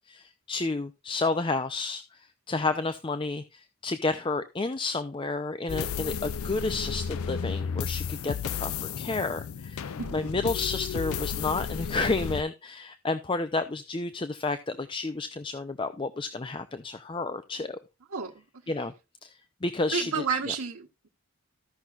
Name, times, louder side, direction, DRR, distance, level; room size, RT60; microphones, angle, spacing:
voice 1, 0.1-17.8 18.7-18.9 19.2-19.3 19.6-20.2, left 3 dB, 25° left, 0.5 m, -31 dB
sound 1, 5.7-12.4, left 7 dB, 80° left, 0.5 m, -33 dB
voice 2, 19.9-21.1, right 6 dB, 85° right, 1.3 m, -31 dB
15.0 x 5.9 x 2.4 m
head